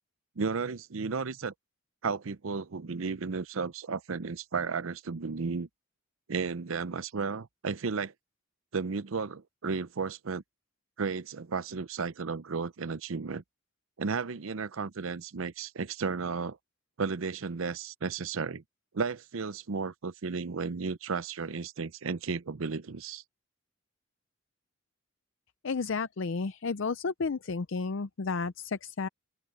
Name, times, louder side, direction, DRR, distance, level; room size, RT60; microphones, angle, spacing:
voice 1, 0.4-1.5 2.0-5.7 6.3-8.1 8.7-10.4 11.0-13.4 14.0-16.6 17.0-18.6 18.9-23.2, right 5 dB, 75° right, 0.6 m, -33 dB
voice 2, 25.6-29.1, left 4 dB, 65° left, 0.5 m, -32 dB
open air
head